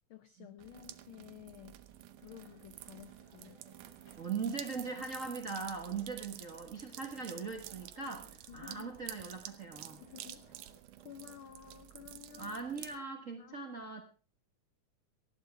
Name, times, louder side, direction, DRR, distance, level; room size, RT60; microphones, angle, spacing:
voice 1, 0.1-1.8 2.2-3.6 8.5-8.9 10.0-10.7 11.0-12.6 13.4-13.7, left 11 dB, 85° left, 10 dB, 1.1 m, -53 dB
sound 1, 0.6-13.0, right 13 dB, 85° right, 2.4 m, -50 dB
sound 2, 1.8-10.8, left 2 dB, 35° left, 2.6 m, -64 dB
voice 2, 4.2-10.0 12.4-14.0, right 5 dB, 50° right, 5 dB, 0.9 m, -40 dB
19.0 x 14.0 x 3.4 m, 0.36 s
omnidirectional pair, 3.5 m